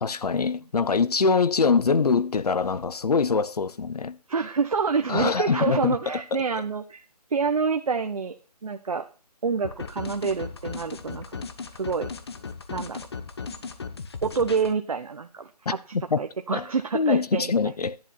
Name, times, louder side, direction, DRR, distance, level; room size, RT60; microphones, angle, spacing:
voice 1, 0.0-4.2 5.1-6.0 16.1-16.2 16.5-16.6 16.9-18.0, left 5 dB, 70° left, 0.9 m, -23 dB
voice 2, 4.3-7.0 7.3-8.4 8.6-9.0 9.4-11.5 11.7-12.1 12.7-13.0 14.2-15.5 16.2-17.5, right 5 dB, 60° right, 1.0 m, -27 dB
sound 1, 9.6-14.7, left 5 dB, 40° left, 1.0 m, -37 dB
11.0 x 8.0 x 4.3 m
hypercardioid pair, 175°, 21 cm